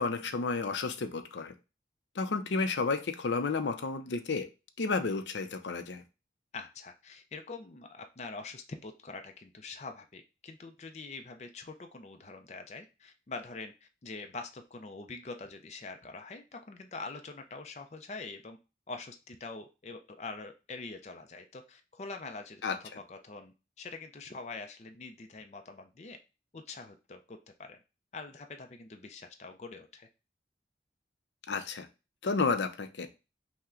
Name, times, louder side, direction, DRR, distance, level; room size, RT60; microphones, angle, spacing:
voice 1, 0.0-1.5 2.2-4.5 4.8-6.0 22.6-22.8 31.5-31.9 32.2-33.1, left 4 dB, 90° left, 8 dB, 0.6 m, -31 dB
voice 2, 6.5-18.6 18.9-26.2 26.5-27.8 28.1-30.1, left 3 dB, 40° left, 6 dB, 0.4 m, -44 dB
5.6 x 2.2 x 3.7 m, 0.29 s
head